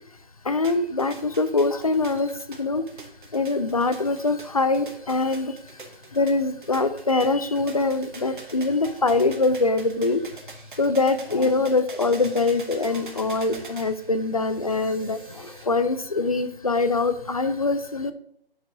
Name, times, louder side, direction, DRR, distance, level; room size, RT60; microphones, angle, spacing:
voice 1, 0.4-2.9 3.3-5.8 6.1-10.3 10.8-18.1, left 3 dB, 40° left, 10 dB, 0.4 m, -23 dB
sound 1, 0.6-15.6, right 3 dB, 55° right, 1.0 m, -44 dB
4.7 x 4.4 x 4.8 m, 0.70 s
figure-of-eight pair, 155°, 29 cm